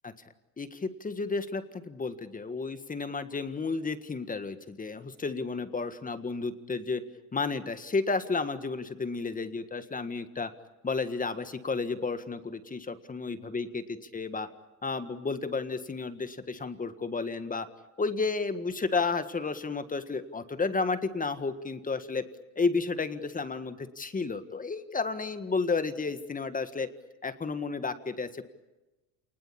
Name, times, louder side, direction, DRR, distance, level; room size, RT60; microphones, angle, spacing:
voice 1, 0.6-7.0 7.3-10.5 10.8-13.8 14.1-14.5 14.8-17.7 18.0-22.2 22.5-26.9 27.2-28.4, left 4 dB, 20° left, 10 dB, 1.7 m, -32 dB
28.0 x 20.0 x 8.7 m, 1.0 s
cardioid pair, 120°, 44 cm